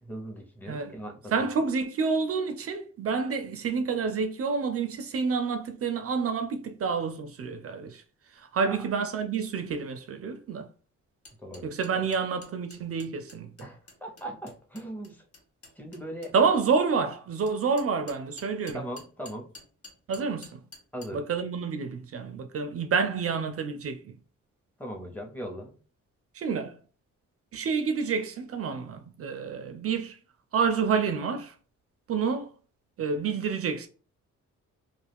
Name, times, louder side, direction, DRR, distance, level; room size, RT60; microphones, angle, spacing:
voice 1, 0.0-1.5 8.7-8.8 11.4-11.7 11.9-12.1 13.6-15.2 15.8-16.3 18.7-19.5 20.9-21.3 24.8-25.7, right 1 dB, 5° left, 0.8 m, -39 dB
voice 2, 1.3-8.0 8.4-10.7 11.6-13.7 16.3-18.8 20.1-20.6 21.1-24.1 26.3-26.8 27.5-30.2 30.5-31.5 32.1-32.5 33.0-33.9, right 5 dB, 50° right, 0.4 m, -28 dB
sound 1, 11.2-16.3 17.5-21.1, left 3 dB, 45° left, 1.0 m, -49 dB
2.4 x 2.3 x 3.4 m
cardioid pair, 90°, 31 cm